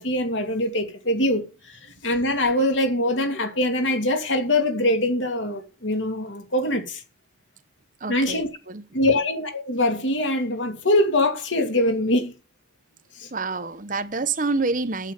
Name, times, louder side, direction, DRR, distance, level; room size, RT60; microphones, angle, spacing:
voice 1, 0.0-7.0 8.1-8.5 8.9-12.3 13.1-13.3, left 1 dB, 85° left, 2.6 m, -23 dB
voice 2, 8.0-9.1 13.3-15.1, right 3 dB, 45° right, 1.0 m, -28 dB
9.0 x 7.4 x 7.5 m
head